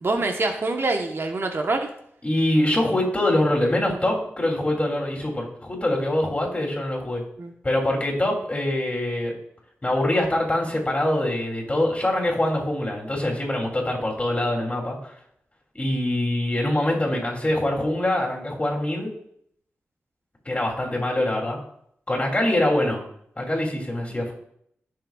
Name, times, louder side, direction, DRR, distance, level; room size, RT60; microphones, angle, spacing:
voice 1, 0.0-1.9 7.4-7.5 24.1-24.2, right 2 dB, 55° right, 4 dB, 1.2 m, -25 dB
voice 2, 2.2-7.2 7.6-9.3 9.8-15.0 15.7-19.1 20.4-21.6 22.1-23.0 23.4-24.3, left 1 dB, 25° left, -1 dB, 3.0 m, -24 dB
15.0 x 6.6 x 2.4 m, 0.69 s
cardioid pair, 65°, 5 cm